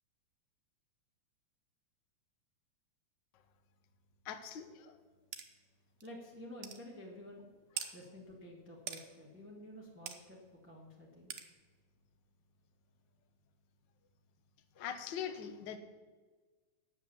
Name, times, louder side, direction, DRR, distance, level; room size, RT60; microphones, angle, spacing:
voice 1, 4.2-5.0 7.8-7.9 14.8-15.8, left 8 dB, 80° left, 8 dB, 1.0 m, -42 dB
sound 1, 5.3-5.5 6.0-6.1 6.6-6.8 7.8-7.9 8.9-9.0 10.1-10.2 11.3-11.5, right 9 dB, 65° right, 1.5 m, -41 dB
voice 2, 6.0-7.5 7.9-11.3, left 1 dB, 5° right, -2 dB, 0.9 m, -51 dB
9.9 x 8.1 x 7.1 m, 1.4 s
omnidirectional pair, 3.3 m